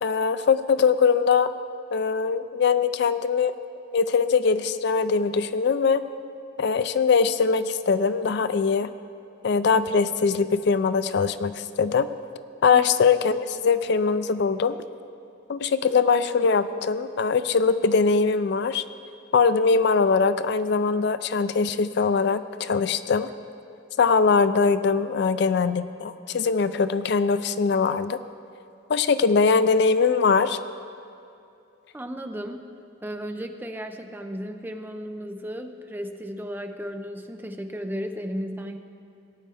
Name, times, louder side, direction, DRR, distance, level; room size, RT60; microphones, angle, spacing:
voice 1, 0.0-1.5 1.9-3.5 3.9-6.0 6.6-8.9 9.4-12.1 12.6-14.8 15.5-18.8 19.3-23.3 24.0-28.2 28.9-30.6, left 5 dB, 60° left, 13 dB, 0.4 m, -22 dB
voice 2, 31.9-32.6 33.0-38.8, equal, 10° right, 6 dB, 0.5 m, -34 dB
18.0 x 9.5 x 3.5 m, 2.5 s
head